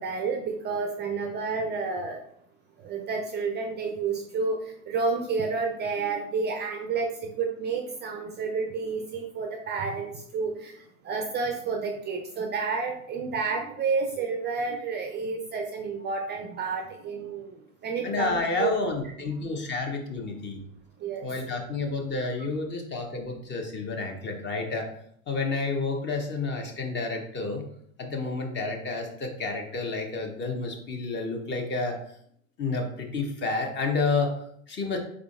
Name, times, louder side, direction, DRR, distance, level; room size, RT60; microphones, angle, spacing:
voice 1, 0.0-2.2 2.8-17.6 17.8-18.7 21.0-21.3, right 4 dB, 25° right, 3 dB, 0.5 m, -30 dB
voice 2, 18.0-20.6 21.2-24.9 25.3-27.6 28.0-32.0 32.6-34.3 34.7-35.0, left 3 dB, 25° left, 3 dB, 0.8 m, -30 dB
4.3 x 3.7 x 2.4 m, 0.68 s
hypercardioid pair, 95°, 41 cm